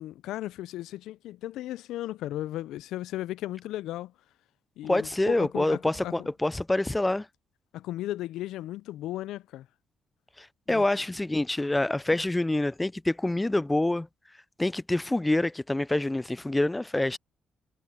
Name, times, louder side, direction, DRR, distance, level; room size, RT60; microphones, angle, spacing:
voice 1, 0.0-4.1 4.8-6.3 7.7-9.7 10.7-10.8, left 14 dB, 85° left, 0.4 m, -35 dB
voice 2, 4.8-7.3 10.4-14.1 14.6-17.2, left 2 dB, 10° left, 0.3 m, -26 dB
cardioid pair, 90°, 0 cm